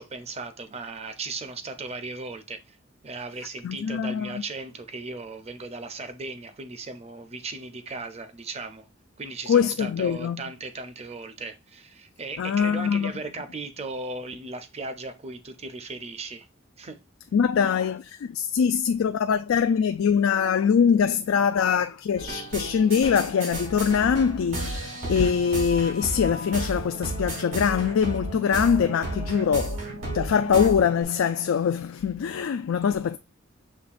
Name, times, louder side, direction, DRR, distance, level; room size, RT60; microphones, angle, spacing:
voice 1, 0.0-2.8 3.0-8.9 9.2-16.5 16.8-17.0, right 3 dB, 30° right, 0.6 m, -37 dB
voice 2, 3.6-4.4 9.5-10.4 12.4-13.1 17.3-33.2, left 7 dB, 80° left, 0.3 m, -23 dB
sound 1, 22.2-31.0, right 1 dB, 90° right, 2.7 m, -33 dB
6.4 x 3.1 x 2.5 m
head